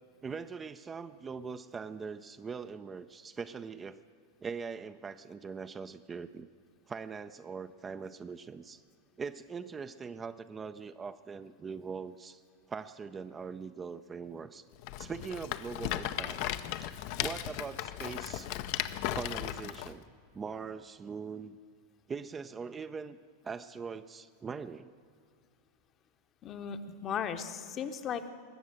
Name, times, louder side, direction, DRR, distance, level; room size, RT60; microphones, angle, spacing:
voice 1, 0.2-4.0 4.4-6.5 6.9-8.8 9.2-12.4 12.7-14.6 15.0-16.4 16.8-16.9 17.2-18.5 19.1-20.0 20.3-21.6 22.1-23.2 23.4-24.9, right 5 dB, 20° right, 11 dB, 0.4 m, -41 dB
Rattle, 14.8-19.9, left 13 dB, 50° left, 0.5 m, -36 dB
voice 2, 26.4-28.3, left 7 dB, 35° left, 9 dB, 0.9 m, -36 dB
20.0 x 7.2 x 7.7 m, 2.3 s
figure-of-eight pair, 90°, 0 cm